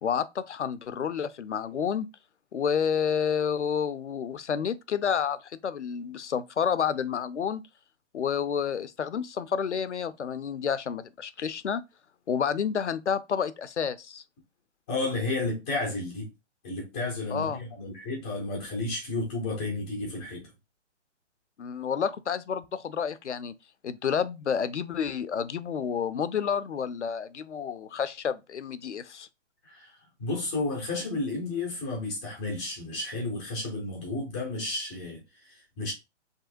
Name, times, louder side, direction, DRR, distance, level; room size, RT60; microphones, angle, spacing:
voice 1, 0.0-2.1 2.5-5.4 5.6-7.6 8.1-11.8 12.3-14.2 17.3-17.6 21.6-23.5 23.8-29.3, left 7 dB, 70° left, 0.6 m, -29 dB
voice 2, 14.9-16.3 16.6-20.5 29.6-35.9, left 2 dB, 5° left, 0.4 m, -32 dB
5.3 x 3.5 x 2.6 m
figure-of-eight pair, 140°, 36 cm